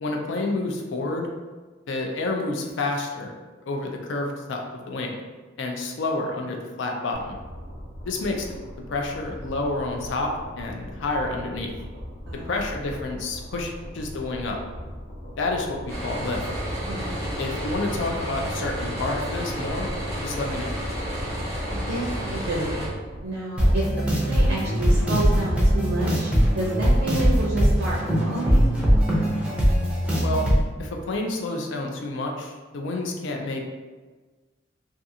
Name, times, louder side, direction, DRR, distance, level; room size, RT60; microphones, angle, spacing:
voice 1, 0.0-1.3 1.9-3.3 3.6-5.2 5.6-7.4 8.0-8.6 8.9-11.7 12.3-14.6 15.4-16.4 17.4-19.9 20.2-20.7 30.2-30.5 30.8-33.6, left 2 dB, 65° left, 2 dB, 0.4 m, -29 dB
sound 1, 7.1-23.3, equal, 50° left, 0.8 m, -40 dB
voice 2, 12.3-12.6 16.9-17.3 21.7-22.8 23.2-28.6, right 1 dB, 65° right, -4 dB, 0.5 m, -30 dB
sound 2, 15.9-22.9, equal, 15° left, 0.9 m, -31 dB
sound 3, 23.6-30.6, equal, 5° right, 0.5 m, -21 dB
2.5 x 2.4 x 2.7 m, 1.4 s
head